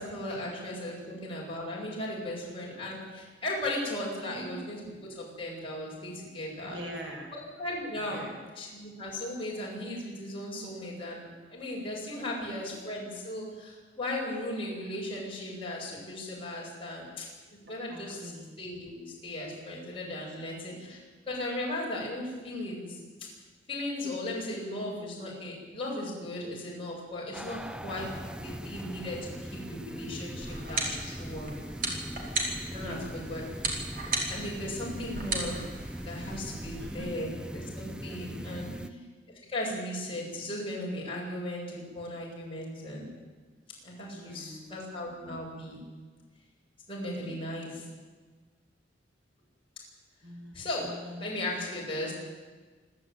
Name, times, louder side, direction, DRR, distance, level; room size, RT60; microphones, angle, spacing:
voice 1, 0.0-6.8 7.3-8.3 8.5-17.3 17.7-18.3 18.6-21.0 21.3-23.0 23.7-28.1 28.4-31.6 32.7-33.4 34.3-35.6 36.0-38.7 39.5-43.1 43.8-45.8 46.9-47.9 50.5-50.9 51.2-52.1, left 1 dB, 30° left, -4 dB, 7.8 m, -37 dB
voice 2, 4.2-4.6 6.6-7.3 7.9-8.4 12.2-12.7 17.9-18.5 20.2-20.9 32.7-33.1 36.8-37.2 38.4-38.9 44.1-44.7 47.3-47.9 50.2-52.1, equal, 70° right, 0 dB, 6.4 m, -45 dB
sound 1, 27.3-38.9, equal, 5° right, 0.6 m, -41 dB
sound 2, 30.4-36.9, right 2 dB, 50° right, 4.7 m, -36 dB
27.5 x 12.5 x 9.3 m, 1.4 s
head